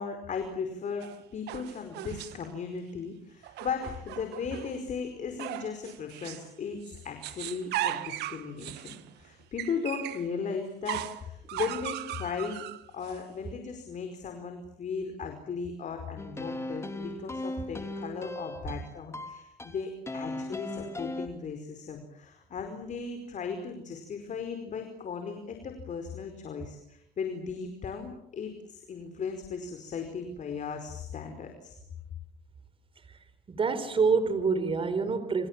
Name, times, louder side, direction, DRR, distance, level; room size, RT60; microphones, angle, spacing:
voice 1, 0.0-12.6 12.9-31.8, left 5 dB, 45° left, 4.9 m, -37 dB
sound 1, 1.0-2.5 3.4-4.8 5.4-6.5 6.8-10.3 10.9-13.2, right 14 dB, 80° right, 1.5 m, -37 dB
sound 2, 16.2-21.3, left 1 dB, 15° left, 3.2 m, -37 dB
voice 2, 33.1-35.5, right 5 dB, 30° right, 4.0 m, -27 dB
30.0 x 26.5 x 7.5 m
cardioid pair, 110°, 17 cm